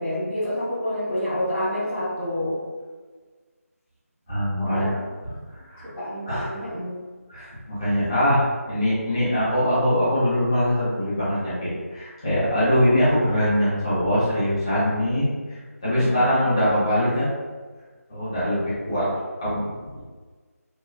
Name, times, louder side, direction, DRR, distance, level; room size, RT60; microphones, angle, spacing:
voice 1, 0.0-2.6 4.6-5.0 5.9-6.9 15.9-16.3, left 1 dB, ahead, -28 dB, 0.5 m, -28 dB
voice 2, 4.3-4.9 5.2-5.9 6.3-6.5 7.3-17.3 18.1-19.1 19.4-19.7, equal, 20° left, -12 dB, 0.8 m, -23 dB
3.0 x 2.0 x 2.4 m, 1.4 s
figure-of-eight pair, 175°, 8 cm